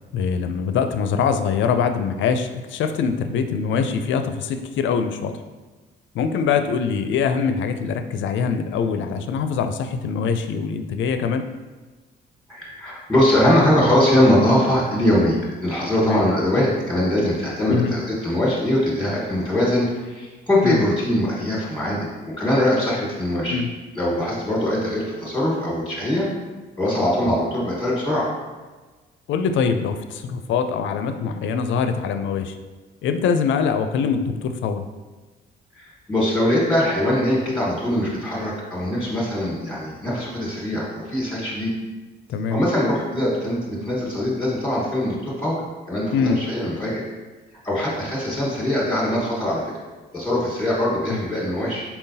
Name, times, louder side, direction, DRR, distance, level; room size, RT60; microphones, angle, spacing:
voice 1, 0.1-5.3 6.1-11.5 16.0-16.2 17.7-17.9 20.6-20.8 23.5-23.7 29.3-32.5 33.0-34.8 42.3-42.6 46.1-46.4 51.1-51.2, left 6 dB, 75° left, 8 dB, 0.4 m, -23 dB
voice 2, 12.5-23.6 23.9-26.3 26.8-28.3 35.7-41.7 42.5-45.6 45.9-47.0 47.6-49.6 50.1-51.8, left 1 dB, ahead, -7 dB, 1.3 m, -22 dB
4.2 x 3.8 x 2.7 m, 1.3 s
cardioid pair, 90°, 20 cm